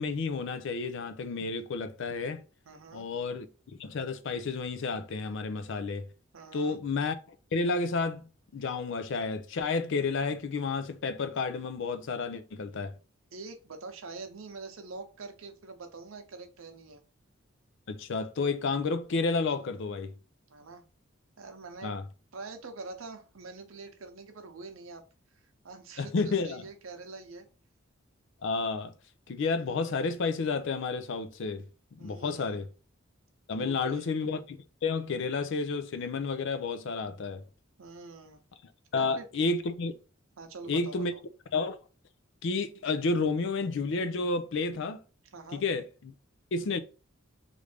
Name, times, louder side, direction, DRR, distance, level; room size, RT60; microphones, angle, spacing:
voice 1, 0.0-2.4 2.9-3.5 3.8-6.1 6.5-12.9 17.9-20.1 21.8-22.0 26.0-26.6 28.4-28.9 29.3-31.6 31.9-32.7 33.5-37.4 38.9-39.9 40.7-41.1 41.5-41.8 42.4-45.0 45.5-46.1 46.5-46.8, left 4 dB, 65° left, 0.4 m, -31 dB
voice 2, 2.6-3.1 6.3-6.8 13.3-17.0 20.5-20.8 21.4-21.9 22.3-25.0 25.6-27.5 32.0-32.6 33.5-34.2 37.8-38.4 39.0-39.3 40.4-41.2 45.3-45.6, right 3 dB, 80° right, 0.7 m, -45 dB
3.2 x 2.5 x 3.3 m
head